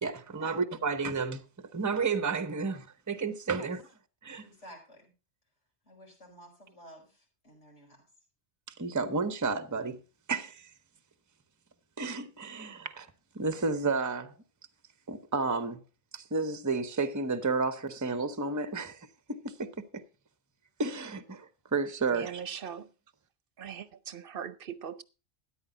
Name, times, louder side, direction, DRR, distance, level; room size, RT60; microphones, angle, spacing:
voice 1, 0.0-3.8 4.2-4.4 8.8-10.0 10.3-10.7 12.0-13.1 13.3-14.3 15.1-15.8 16.1-20.0 20.8-22.4, right 4 dB, 20° right, 0.8 m, -32 dB
voice 2, 4.4-5.1 5.8-8.0, equal, 90° left, 5.6 m, -51 dB
voice 3, 22.1-22.9 23.6-25.0, right 8 dB, 55° right, 0.9 m, -40 dB
13.0 x 10.5 x 3.8 m
omnidirectional pair, 1.2 m